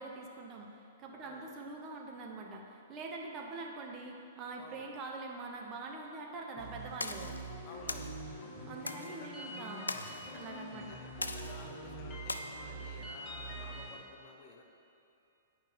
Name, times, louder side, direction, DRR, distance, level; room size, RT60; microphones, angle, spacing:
voice 1, 0.0-7.4 8.7-9.9 10.3-11.0, right 3 dB, 30° right, 0 dB, 0.9 m, -44 dB
voice 2, 4.6-4.9 7.6-8.3 9.0-9.5 10.3-14.6, left 4 dB, 35° left, 2 dB, 0.9 m, -53 dB
sound 1, 6.6-14.0, right 1 dB, 15° left, 1.6 m, -44 dB
sound 2, 7.0-7.4 7.9-8.1 8.9-9.1 9.9-10.3 11.2-11.7 12.3-12.4, left 2 dB, 80° left, 0.4 m, -39 dB
9.0 x 5.2 x 4.5 m, 2.7 s
figure-of-eight pair, 110°, 0 cm